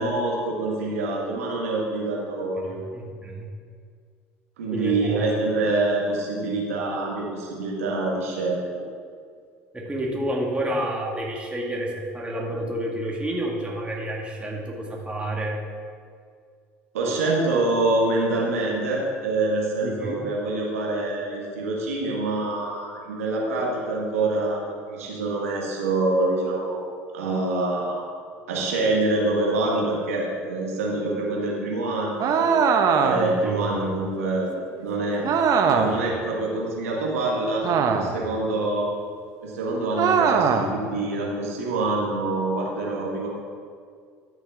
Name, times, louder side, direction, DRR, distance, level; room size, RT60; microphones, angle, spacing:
voice 1, 0.0-2.8 4.6-8.8 16.9-28.0 28.5-32.5 33.0-34.5 34.8-35.3 35.6-38.9 39.4-43.3, right 2 dB, 85° right, -3 dB, 1.7 m, -26 dB
voice 2, 2.6-3.5 4.7-5.2 9.7-15.6 19.8-20.2 33.4-34.0, right 1 dB, 15° right, -2 dB, 2.2 m, -29 dB
sound 1, 32.2-33.4 35.2-36.1 37.6-38.3 40.0-40.8, right 6 dB, 50° right, 0.8 m, -21 dB
12.5 x 6.4 x 3.8 m, 2.1 s
hypercardioid pair, 70°, 8 cm